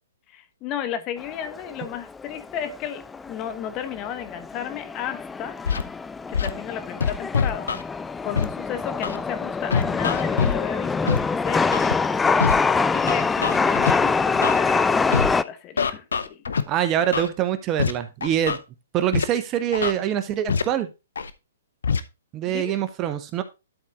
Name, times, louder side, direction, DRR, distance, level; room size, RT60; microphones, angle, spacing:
voice 1, 0.3-5.6 6.3-7.7 7.9-11.7 12.9-16.4 22.5-22.7, left 9 dB, 30° left, 10 dB, 1.0 m, -33 dB
Chatter / Subway metro underground, 1.2-15.4, left 4 dB, 10° left, 0.3 m, -25 dB
Scratching (performance technique), 5.7-5.8 6.3-6.5 7.0-7.8 8.4-8.5 9.0-9.2 9.7-10.6 11.1-11.2 11.7-11.9 12.4-12.6 13.1-13.9 14.4-14.6 15.1-15.3 15.8-16.6 17.1-17.3 17.8-17.9 18.2-18.6 19.1-19.3 19.7-19.9 20.5-20.6 21.2-21.3 21.8-22.0, left 6 dB, 80° left, 0.7 m, -23 dB
voice 2, 16.7-18.6 18.9-20.9 22.3-23.4, right 10 dB, 30° right, 10 dB, 0.9 m, -24 dB
11.5 x 4.2 x 3.6 m, 0.26 s
hypercardioid pair, 130°, 0 cm